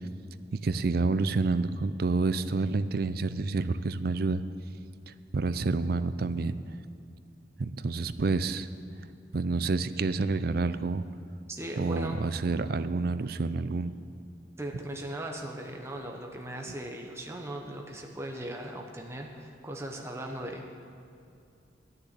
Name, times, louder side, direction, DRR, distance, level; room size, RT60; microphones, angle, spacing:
voice 1, 0.6-4.4 5.3-6.5 7.6-8.7 9.3-11.0 11.8-13.9, right 3 dB, 55° right, 13 dB, 0.5 m, -28 dB
voice 2, 11.5-12.2 14.6-20.9, right 1 dB, 15° right, 1 dB, 1.0 m, -38 dB
12.0 x 6.8 x 9.7 m, 2.5 s
head